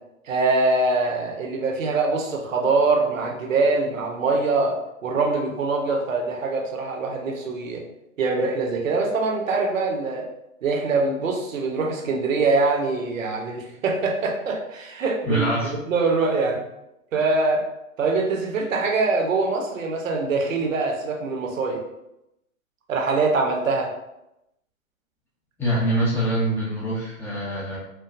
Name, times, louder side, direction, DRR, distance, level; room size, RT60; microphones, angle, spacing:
voice 1, 0.3-7.8 8.2-10.3 10.6-16.6 17.1-17.7 18.0-21.8 22.9-23.9, right 3 dB, 70° right, 2 dB, 0.9 m, -23 dB
voice 2, 15.3-15.7 25.6-27.8, right 1 dB, 5° left, -7 dB, 0.8 m, -24 dB
4.5 x 2.2 x 2.5 m, 0.87 s
figure-of-eight pair, 115°, 41 cm